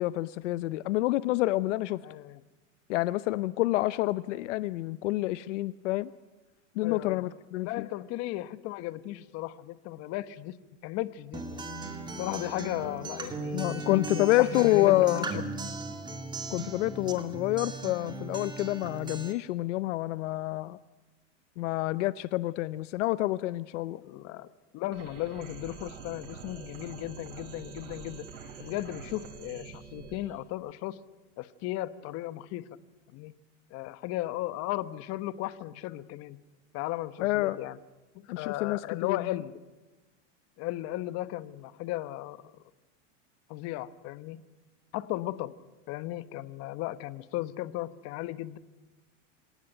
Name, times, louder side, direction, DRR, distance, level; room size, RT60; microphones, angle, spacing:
voice 1, 0.0-2.0 2.9-6.1 6.8-7.9 13.5-15.3 16.5-20.8 21.6-24.0 37.2-37.6 38.3-39.2, left 17 dB, 70° left, 17 dB, 0.7 m, -28 dB
voice 2, 2.0-2.4 6.8-7.3 7.6-10.5 10.8-11.6 12.2-15.4 24.0-24.5 24.7-28.3 28.6-31.0 31.4-32.7 33.1-33.3 33.7-36.4 36.7-37.8 38.1-39.6 40.6-42.4 43.5-44.4 44.9-45.5 45.9-48.6, left 15 dB, 40° left, 15 dB, 1.1 m, -35 dB
Acoustic guitar, 11.3-19.3, right 3 dB, 10° right, 2.3 m, -38 dB
sound 1, 24.9-30.2, right 6 dB, 75° right, 7.7 m, -45 dB
26.0 x 18.5 x 9.0 m, 1.2 s
supercardioid pair, 145°, 38 cm